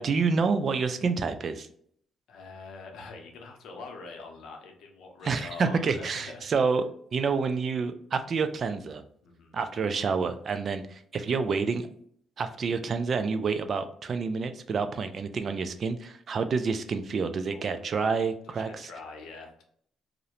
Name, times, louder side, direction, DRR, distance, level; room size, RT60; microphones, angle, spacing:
voice 1, 0.0-1.7 5.2-6.8 7.1-9.0 9.5-11.9 12.4-18.9, right 5 dB, 50° right, 9 dB, 0.3 m, -28 dB
voice 2, 2.3-6.5 9.2-9.6 17.5-17.9 18.4-19.6, left 4 dB, 80° left, 2 dB, 0.6 m, -44 dB
2.4 x 2.1 x 2.8 m, 0.64 s
cardioid pair, 90°, 0 cm